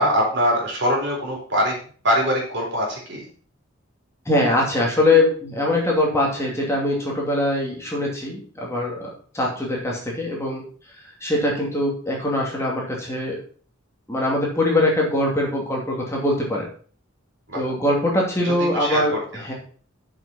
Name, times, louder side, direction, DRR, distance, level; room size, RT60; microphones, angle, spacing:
voice 1, 0.0-1.8 2.0-3.2 17.5-17.6 18.4-19.5, equal, 60° right, -2 dB, 4.1 m, -23 dB
voice 2, 4.3-9.1 9.3-10.6 11.2-13.4 14.1-16.7 17.5-19.1 19.4-19.5, left 1 dB, 15° left, -3 dB, 2.6 m, -22 dB
7.5 x 6.2 x 5.6 m, 0.44 s
head